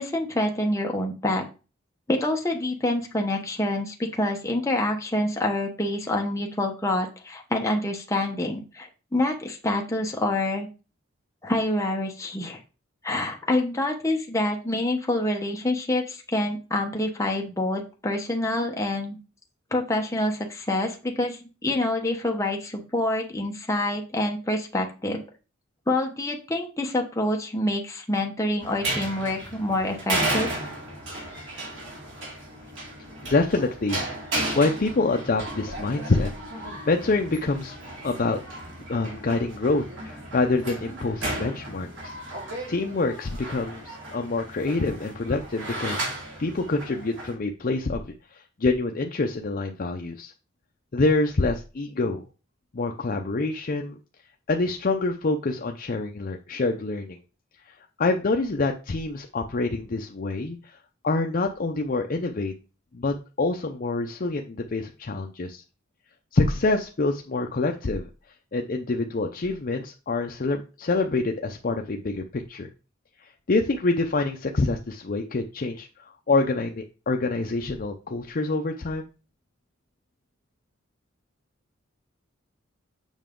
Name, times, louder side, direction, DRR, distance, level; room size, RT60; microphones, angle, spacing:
voice 1, 0.0-1.4 2.1-10.7 11.4-12.6 13.0-19.2 19.7-25.2 25.9-30.5, left 1 dB, 15° left, 1 dB, 0.9 m, -27 dB
sound 1, 28.6-47.3, right 1 dB, 65° right, 2.9 m, -34 dB
voice 2, 33.2-36.3 36.6-37.8 38.0-38.4 38.9-42.2 42.7-46.0 46.4-50.3 50.9-52.2 52.7-54.0 54.5-57.2 58.0-60.8 61.0-62.5 62.9-65.6 66.3-68.1 68.5-72.7 73.2-79.1, left 3 dB, 45° left, 3 dB, 0.6 m, -26 dB
7.2 x 5.5 x 3.7 m, 0.33 s
head